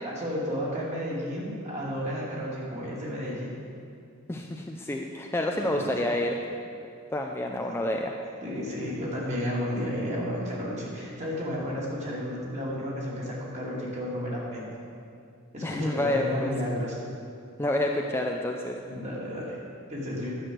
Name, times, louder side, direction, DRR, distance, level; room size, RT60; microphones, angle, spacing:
voice 1, 0.0-3.6 5.5-6.1 8.4-14.7 15.5-17.0 18.8-19.6 19.9-20.3, equal, 35° right, -5 dB, 2.7 m, -32 dB
voice 2, 4.3-6.4 7.1-8.1 15.6-16.5 17.6-18.8, left 1 dB, 10° left, 1 dB, 0.5 m, -28 dB
10.5 x 6.4 x 7.6 m, 2.5 s
head